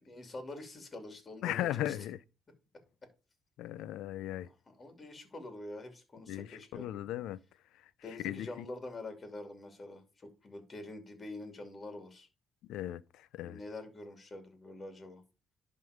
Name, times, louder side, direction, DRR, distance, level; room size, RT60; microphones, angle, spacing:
voice 1, 0.0-2.0 4.5-6.9 8.0-12.3 13.4-15.2, left 2 dB, 30° left, 2.7 m, -46 dB
voice 2, 1.4-2.2 3.6-4.5 6.3-7.4 8.2-8.5 12.7-13.0 13.3-13.6, left 13 dB, 90° left, 0.4 m, -36 dB
11.0 x 3.8 x 5.0 m
cardioid pair, 90°, 0 cm